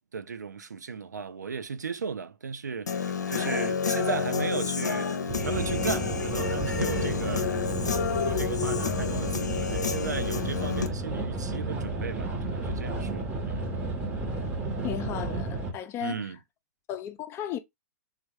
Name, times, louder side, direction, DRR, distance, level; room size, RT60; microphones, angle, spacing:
voice 1, 0.0-5.1 5.4-7.5 8.2-13.7 16.0-16.4, right 5 dB, 90° right, 0.4 m, -35 dB
Human voice / Guitar, 2.9-10.9, left 6 dB, 85° left, 0.5 m, -29 dB
sound 1, 5.3-15.7, right 2 dB, 20° right, 0.9 m, -32 dB
voice 2, 14.8-16.2 16.9-17.6, left 11 dB, 30° left, 0.5 m, -34 dB
3.4 x 2.2 x 3.0 m
hypercardioid pair, 110°, 9 cm